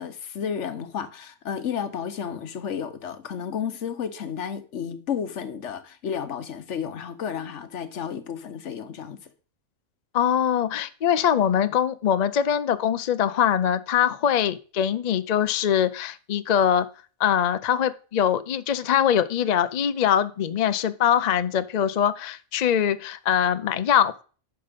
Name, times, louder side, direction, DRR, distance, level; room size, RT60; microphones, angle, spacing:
voice 1, 0.0-9.2, left 7 dB, 70° left, 1.2 m, -32 dB
voice 2, 10.1-16.9 17.2-24.2, left 9 dB, 50° left, 0.5 m, -23 dB
10.5 x 5.6 x 5.1 m
omnidirectional pair, 1.3 m